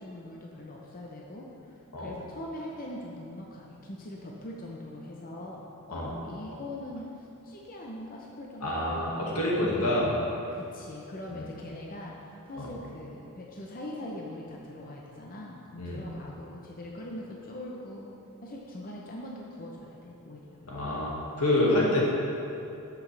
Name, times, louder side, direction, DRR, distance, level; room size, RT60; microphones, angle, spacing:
voice 1, 0.0-9.1 9.5-18.1 18.4-20.6, left 1 dB, 40° left, -2 dB, 0.8 m, -42 dB
voice 2, 8.6-10.1 11.3-11.4 12.6-12.7 15.8-16.0 20.7-22.0, left 1 dB, 85° left, -5 dB, 1.9 m, -27 dB
12.5 x 6.0 x 3.4 m, 2.8 s
head